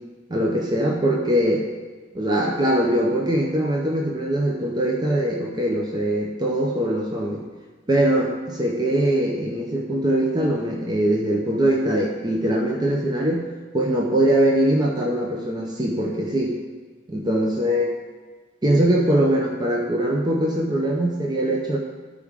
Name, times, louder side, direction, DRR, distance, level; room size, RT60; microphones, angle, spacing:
voice 1, 0.3-1.7 2.1-7.4 7.9-13.4 13.7-16.6 17.1-17.9 18.6-21.8, right 1 dB, 20° right, -2 dB, 0.7 m, -22 dB
13.5 x 4.8 x 3.6 m, 1.4 s
head